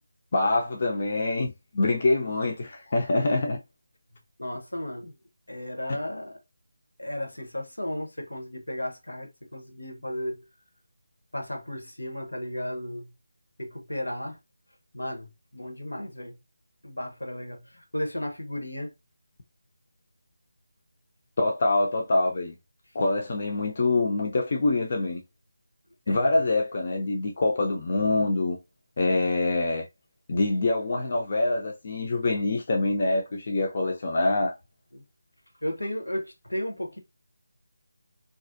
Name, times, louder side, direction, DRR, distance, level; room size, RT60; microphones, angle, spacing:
voice 1, 0.3-3.6 21.4-22.6 22.9-25.2 26.1-28.6 29.0-29.9 30.3-34.5, left 2 dB, 45° left, 0.4 m, -25 dB
voice 2, 4.4-5.1 5.5-6.4 7.0-10.4 11.3-13.1 13.6-14.4 14.9-16.4 16.8-18.9 26.1-26.3 34.9-35.0 35.6-37.0, left 1 dB, 80° left, 0.8 m, -34 dB
2.4 x 2.0 x 2.5 m
figure-of-eight pair, 160°, 0 cm